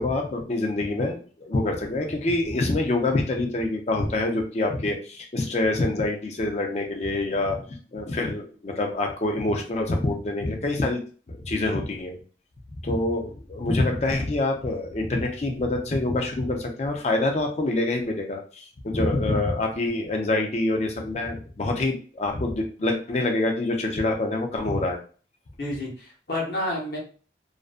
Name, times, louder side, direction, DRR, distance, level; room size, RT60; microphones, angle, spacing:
voice 1, 0.0-11.0 11.3-12.2 12.7-25.0, left 2 dB, 40° left, 3 dB, 0.4 m, -26 dB
voice 2, 25.6-27.0, left 1 dB, 60° left, -3 dB, 0.9 m, -30 dB
2.5 x 2.1 x 2.4 m, 0.40 s
head